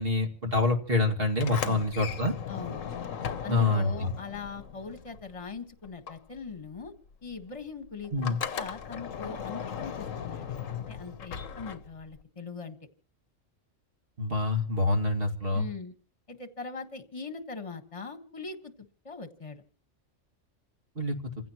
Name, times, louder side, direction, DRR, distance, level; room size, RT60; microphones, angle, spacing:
voice 1, 0.0-2.3 3.5-4.1 8.1-8.4 14.2-15.7 21.0-21.2, left 2 dB, 45° right, 2 dB, 2.5 m, -26 dB
Sliding door, 1.3-5.6 5.8-12.2, left 7 dB, 90° left, 1.3 m, -38 dB
voice 2, 2.5-2.8 3.4-6.9 7.2-10.6 10.9-12.8 15.5-15.9 16.3-18.7 19.0-19.6, left 4 dB, 25° left, 7 dB, 1.5 m, -41 dB
28.5 x 15.5 x 3.0 m, 0.40 s
omnidirectional pair, 1.3 m